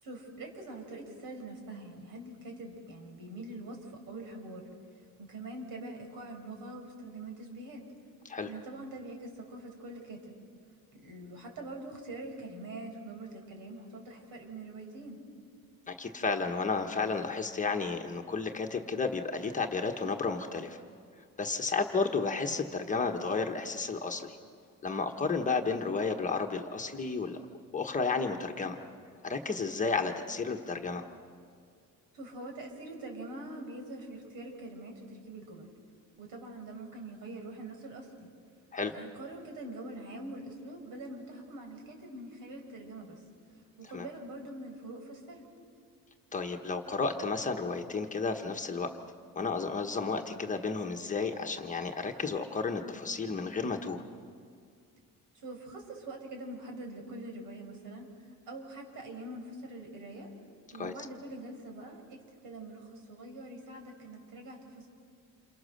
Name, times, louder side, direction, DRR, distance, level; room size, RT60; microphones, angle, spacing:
voice 1, 0.0-4.6 5.2-7.9 8.4-10.3 10.9-15.2 32.1-35.7 36.2-38.3 38.8-43.2 43.8-45.4 55.3-60.3 60.7-62.2 62.4-64.9, right 2 dB, 75° right, 2 dB, 5.4 m, -44 dB
voice 2, 15.9-20.8 21.4-24.4 24.8-27.4 27.7-28.8 29.2-31.0 38.7-38.9 43.9-44.1 46.3-48.9 49.3-54.0 60.8-60.9, left 4 dB, 20° left, 4 dB, 1.2 m, -32 dB
29.0 x 28.0 x 6.6 m, 2.3 s
cardioid pair, 165°, 35 cm